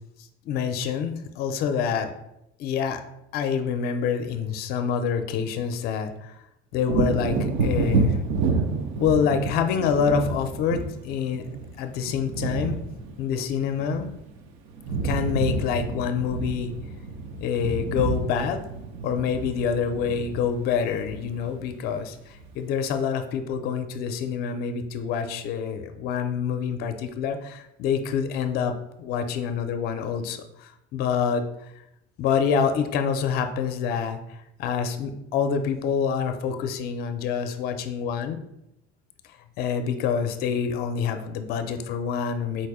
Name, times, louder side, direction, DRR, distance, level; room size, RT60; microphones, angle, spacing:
voice 1, 0.5-2.1 2.6-3.0 3.3-6.1 6.7-8.2 9.0-11.4 11.8-12.8 13.2-14.1 15.0-16.7 17.4-18.6 19.0-22.2 22.5-28.7 29.0-31.4 32.2-34.2 34.6-38.4 39.6-42.7, left 7 dB, 50° left, 7 dB, 0.5 m, -26 dB
Wind / Thunder, 6.8-14.4 14.7-21.9 22.3-22.5, right 3 dB, 85° right, 0.7 m, -29 dB
4.3 x 2.6 x 4.8 m, 0.84 s
cardioid pair, 170°, 20 cm